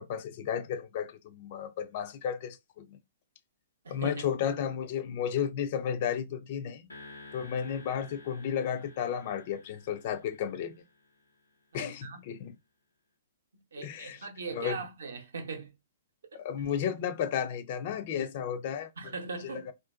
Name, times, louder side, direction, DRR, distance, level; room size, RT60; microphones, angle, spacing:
voice 1, 0.0-3.0 3.9-6.9 7.3-10.8 11.7-12.6 13.8-14.2 14.5-14.8 16.3-19.1 19.5-19.7, left 8 dB, 45° left, 0.3 m, -33 dB
voice 2, 3.8-4.2 11.7-12.2 13.7-15.7 19.0-19.7, right 4 dB, 70° right, 0.6 m, -40 dB
sound 1, 6.9-11.4, left 2 dB, 85° left, 0.6 m, -52 dB
2.4 x 2.2 x 2.3 m
figure-of-eight pair, 115°, 0 cm